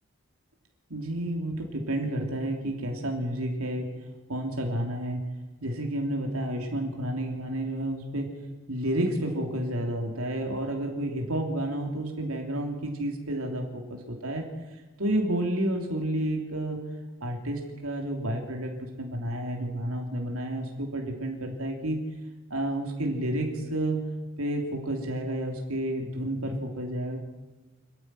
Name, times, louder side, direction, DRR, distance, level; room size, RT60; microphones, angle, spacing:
voice 1, 0.9-3.9 4.3-5.2 5.6-8.3 8.7-14.5 15.0-16.8 17.2-18.7 19.0-22.0 22.5-24.0 24.4-27.2, right 1 dB, 85° right, 2 dB, 3.2 m, -30 dB
27.5 x 10.5 x 9.4 m, 1.2 s
head